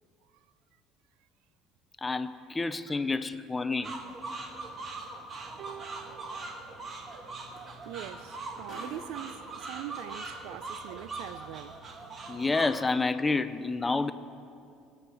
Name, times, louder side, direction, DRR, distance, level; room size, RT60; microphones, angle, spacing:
voice 1, 2.0-4.0 12.3-14.1, left 3 dB, 15° left, 0.5 m, -29 dB
sound 1, 3.8-12.9, right 3 dB, 30° right, 1.3 m, -41 dB
sound 2, 5.3-5.5 7.2-7.3 7.5-9.8 10.7-10.8, left 2 dB, 40° left, 2.4 m, -51 dB
sound 3, 5.6-8.1 9.1-9.2, right 9 dB, 50° right, 1.0 m, -51 dB
voice 2, 7.8-11.8, right 13 dB, 75° right, 0.4 m, -42 dB
21.0 x 7.9 x 4.8 m
cardioid pair, 135°, 0 cm